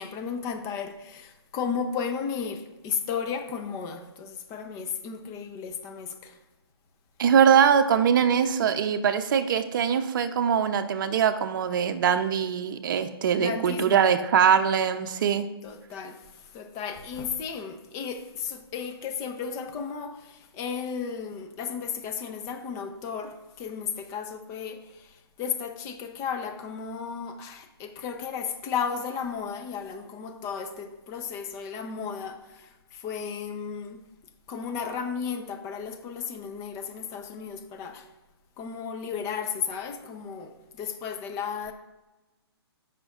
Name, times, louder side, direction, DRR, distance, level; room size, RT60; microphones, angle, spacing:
voice 1, 0.0-6.4 13.4-14.1 15.6-34.0 34.5-38.1 38.6-41.7, left 6 dB, 20° left, 0.7 m, -34 dB
voice 2, 7.2-15.5, right 7 dB, 50° right, 0.7 m, -22 dB
14.0 x 5.8 x 2.5 m
hypercardioid pair, 150°, 14 cm